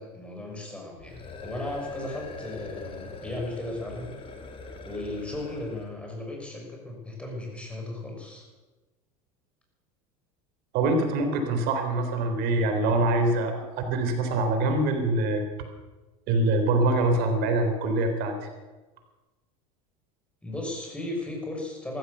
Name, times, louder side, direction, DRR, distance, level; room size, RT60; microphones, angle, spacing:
voice 1, 0.0-4.1 4.8-8.4 20.4-22.0, left 1 dB, 5° left, 0 dB, 6.2 m, -36 dB
sound 1, 1.0-6.0, left 4 dB, 30° left, 2.7 m, -42 dB
voice 2, 10.7-15.5 16.3-18.4, right 2 dB, 60° right, 6 dB, 3.7 m, -24 dB
14.5 x 14.5 x 6.8 m, 1.2 s
supercardioid pair, 100°, 19 cm